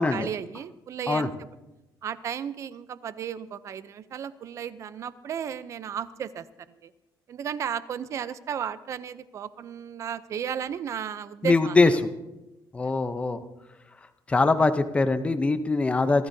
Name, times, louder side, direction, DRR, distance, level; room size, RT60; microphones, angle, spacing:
voice 1, 0.0-1.5 2.0-6.4 6.8-6.9 7.3-12.0 12.8-12.9, right 8 dB, 40° right, 15 dB, 0.5 m, -34 dB
voice 2, 11.4-11.9 12.7-13.4 14.3-16.3, left 3 dB, 15° left, 10 dB, 0.6 m, -22 dB
28.0 x 13.5 x 2.7 m, 0.99 s
cardioid pair, 180°, 8 cm